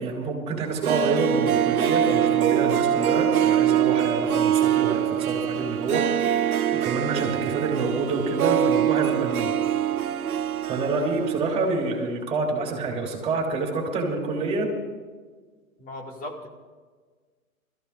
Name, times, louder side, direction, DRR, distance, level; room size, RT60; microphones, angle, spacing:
voice 1, 0.0-6.4 6.8-9.5 10.7-14.7, right 3 dB, 15° right, -1 dB, 4.6 m, -27 dB
Harp, 0.7-11.7 11.9-12.0, right 10 dB, 80° right, 0.6 m, -24 dB
voice 2, 15.8-16.5, left 1 dB, 20° left, 2 dB, 2.4 m, -37 dB
27.5 x 15.0 x 2.6 m, 1.5 s
figure-of-eight pair, 120°, 43 cm